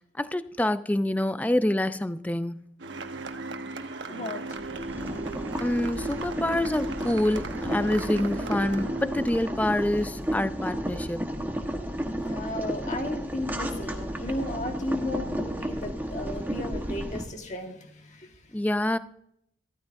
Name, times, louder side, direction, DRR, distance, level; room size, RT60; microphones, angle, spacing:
voice 1, 0.1-2.6 5.6-11.3 18.5-19.0, left 1 dB, 10° left, 0.4 m, -26 dB
sound 1, 2.8-9.6, right 2 dB, 80° right, 1.1 m, -37 dB
voice 2, 4.1-4.5 12.2-18.4, left 1 dB, 40° left, 1.5 m, -34 dB
Boiling, 4.5-17.2, equal, 10° right, 1.2 m, -33 dB
14.5 x 13.5 x 2.6 m
head